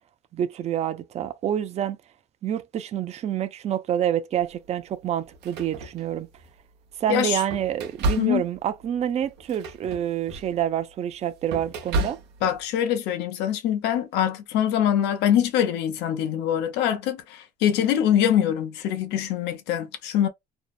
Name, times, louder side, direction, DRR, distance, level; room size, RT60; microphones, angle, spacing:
voice 1, 0.3-2.0 2.4-6.3 7.0-12.2, right 10 dB, 40° right, 0.4 m, -27 dB
sound 1, 4.4-4.5 5.2-6.6 7.1-12.6, right 2 dB, 85° right, 0.6 m, -32 dB
voice 2, 7.1-7.4 8.2-8.4 12.4-20.3, left 10 dB, 85° left, 0.6 m, -24 dB
2.7 x 2.0 x 2.3 m
cardioid pair, 110°, 17 cm